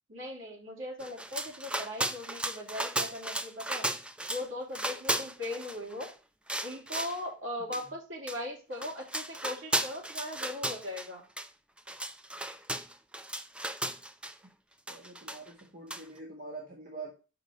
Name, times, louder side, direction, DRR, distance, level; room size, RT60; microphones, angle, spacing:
voice 1, 0.1-3.9 4.3-6.1 6.6-11.2, left 1 dB, 80° right, -2 dB, 3.1 m, -39 dB
sound 1, 1.0-4.5 4.7-6.1 6.5-7.2 7.7-7.8 8.3-8.4 8.7-11.1 11.4-11.5 11.8-14.3 14.9-15.6 15.9-16.0, right 1 dB, 5° right, 0.3 m, -35 dB
voice 2, 14.9-17.1, right 3 dB, 45° right, -1 dB, 1.6 m, -45 dB
6.3 x 5.0 x 5.2 m, 0.33 s
head